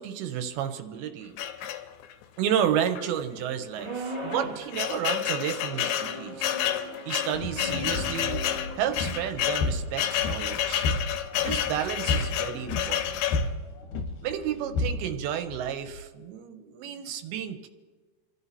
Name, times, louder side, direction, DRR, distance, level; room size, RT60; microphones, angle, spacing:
voice 1, 0.0-1.3 2.4-6.6 7.1-8.4 8.8-10.9 11.4-13.2 14.2-17.7, right 9 dB, 85° right, 7 dB, 2.6 m, -31 dB
sound 1, 1.4-2.2 3.0-3.1 3.4-3.5 4.2-13.5, left 11 dB, 85° left, 2.8 m, -30 dB
sound 2, 3.7-4.7 5.6-9.2, right 2 dB, 45° right, 1.6 m, -39 dB
sound 3, 7.3-16.0, left 2 dB, 70° left, 2.2 m, -32 dB
28.5 x 12.5 x 2.8 m, 1.4 s
omnidirectional pair, 4.6 m